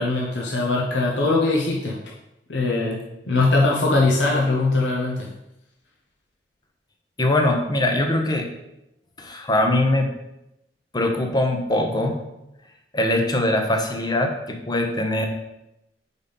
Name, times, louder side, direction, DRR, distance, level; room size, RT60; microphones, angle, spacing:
voice 1, 0.0-2.0 2.5-5.3, left 2 dB, 85° left, -2 dB, 0.9 m, -21 dB
voice 2, 7.2-8.5 9.2-10.1 10.9-12.2 12.9-15.3, left 1 dB, 25° left, 3 dB, 0.8 m, -22 dB
5.1 x 4.1 x 5.3 m, 0.87 s
head